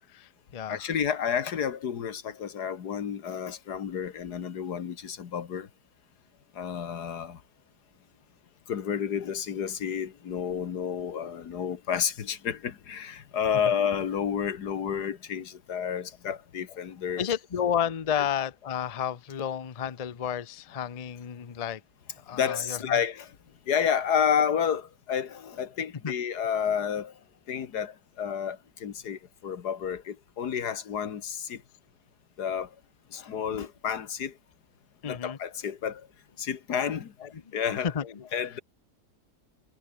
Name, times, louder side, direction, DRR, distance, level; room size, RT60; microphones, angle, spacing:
voice 1, 0.1-0.9 17.2-21.8 22.3-23.0 26.0-26.1 35.0-35.4 37.2-37.5 37.8-38.3, left 8 dB, 40° left, 0.5 m, -31 dB
voice 2, 0.7-5.7 6.5-7.4 8.7-17.3 18.2-18.3 22.3-23.3 23.7-27.1 27.5-31.6 32.4-32.7 33.1-34.3 35.1-36.1 36.4-37.1 37.5-37.9 38.3-38.6, left 8 dB, 90° left, 2.0 m, -30 dB
omnidirectional pair, 1.7 m